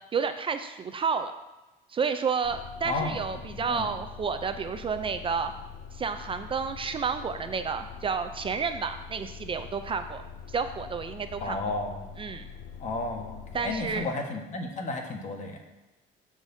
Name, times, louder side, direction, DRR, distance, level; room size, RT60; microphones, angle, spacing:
voice 1, 0.1-1.3 1.9-5.5 5.9-10.2 10.5-11.6 12.2-12.5 13.5-14.1, right 5 dB, 30° right, 9 dB, 0.4 m, -30 dB
sound 1, 2.4-14.1, left 7 dB, 70° left, 0.5 m, -44 dB
voice 2, 2.8-3.2 3.7-3.9 11.4-12.1 12.8-15.6, left 3 dB, 45° left, 2 dB, 1.4 m, -33 dB
13.5 x 5.0 x 2.7 m, 1.0 s
cardioid pair, 110°, 17 cm